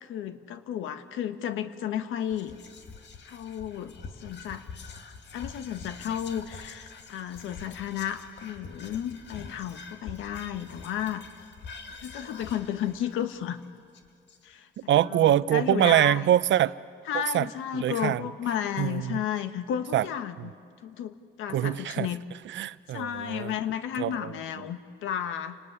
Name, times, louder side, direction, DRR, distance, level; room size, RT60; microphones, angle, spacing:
voice 1, 0.0-2.6 3.3-3.9 4.2-4.6 5.3-11.2 12.0-13.6 14.4-16.2 17.1-20.5 20.8-22.2 22.9-25.6, left 10 dB, 90° left, 10 dB, 1.4 m, -33 dB
Whispering, 2.3-14.8, left 4 dB, 65° left, 2.2 m, -45 dB
voice 2, 14.9-16.7 17.1-17.5 17.7-18.2 18.8-19.2 19.9-20.1 20.4-20.5 21.5-22.1 22.4-23.5 24.0-24.6, right 12 dB, 70° right, 17 dB, 0.7 m, -24 dB
29.0 x 19.0 x 10.0 m, 2.2 s
cardioid pair, 90°, 20 cm